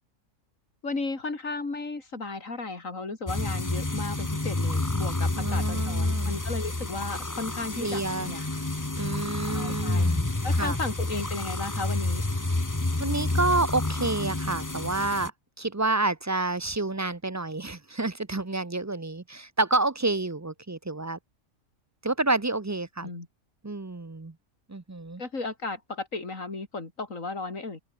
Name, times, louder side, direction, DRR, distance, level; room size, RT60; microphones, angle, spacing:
voice 1, 0.8-8.5 9.5-10.1 10.4-12.2 23.0-23.3 25.2-27.8, left 3 dB, 75° left, 3.9 m, -34 dB
sound 1, 3.3-15.3, left 2 dB, 15° left, 1.3 m, -29 dB
voice 2, 5.4-6.3 7.8-8.3 9.0-10.8 13.0-15.3 15.6-21.2 22.0-23.1 23.6-24.3 24.7-25.2, right 2 dB, 20° right, 0.5 m, -29 dB
open air
omnidirectional pair, 1.4 m